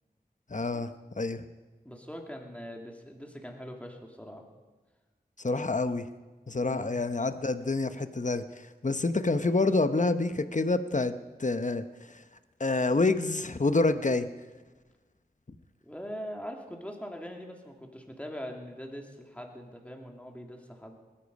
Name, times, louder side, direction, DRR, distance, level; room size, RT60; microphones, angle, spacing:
voice 1, 0.5-1.4 5.4-6.1 6.5-11.1 11.4-12.2 12.6-14.3, left 3 dB, 50° left, 10 dB, 0.9 m, -28 dB
voice 2, 1.8-4.5 6.5-6.9 15.8-21.0, equal, 10° left, 1 dB, 2.6 m, -42 dB
20.0 x 13.0 x 5.3 m, 1.2 s
wide cardioid pair, 40°, 16 cm